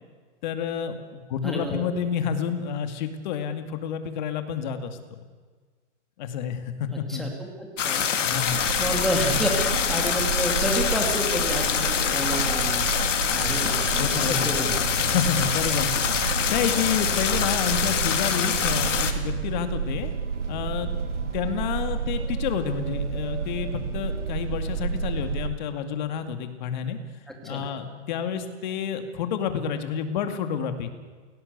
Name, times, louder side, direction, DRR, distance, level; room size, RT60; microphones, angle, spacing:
voice 1, 0.4-5.2 6.2-7.3 8.2-8.6 14.0-20.1 20.5-20.9 21.3-27.0 27.4-30.9, left 8 dB, 40° left, 8 dB, 2.3 m, -29 dB
voice 2, 1.4-1.9 6.9-7.3 7.6-8.0 8.4-12.9 13.3-15.0 27.3-27.7, equal, ahead, 0 dB, 2.8 m, -30 dB
sound 1, 7.8-19.1, left 7 dB, 75° left, 3.2 m, -25 dB
sound 2, 8.4-25.5, right 5 dB, 70° right, 2.6 m, -30 dB
29.5 x 17.5 x 8.2 m, 1.5 s
hypercardioid pair, 170°, 37 cm